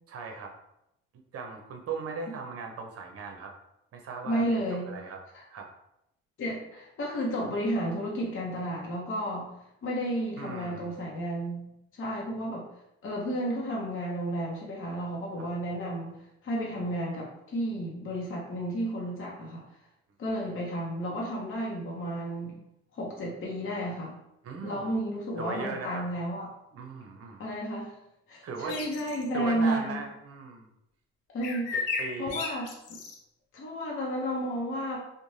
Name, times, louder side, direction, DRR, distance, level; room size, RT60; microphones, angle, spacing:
voice 1, 0.1-0.5 1.3-3.5 3.9-4.6 4.9-5.2 5.5-5.7 10.4-11.0 15.4-15.5 24.4-24.9 25.4-26.1 26.7-27.4 28.4-28.8 29.3-30.7 32.0-32.4, right 4 dB, 50° right, 3 dB, 0.7 m, -38 dB
voice 2, 4.2-4.9 5.3-5.4 6.4-9.5 9.8-12.7 13.0-16.1 16.4-19.6 20.2-22.6 22.9-24.1 24.6-26.5 27.4-27.9 28.3-30.0 31.3-31.8 32.2-33.0 33.5-35.0, equal, 40° left, -3 dB, 0.8 m, -32 dB
sound 1, 28.7-29.3 31.4-33.2, left 4 dB, 85° left, 0.5 m, -34 dB
2.5 x 2.2 x 3.1 m, 0.82 s
supercardioid pair, 65°, 31 cm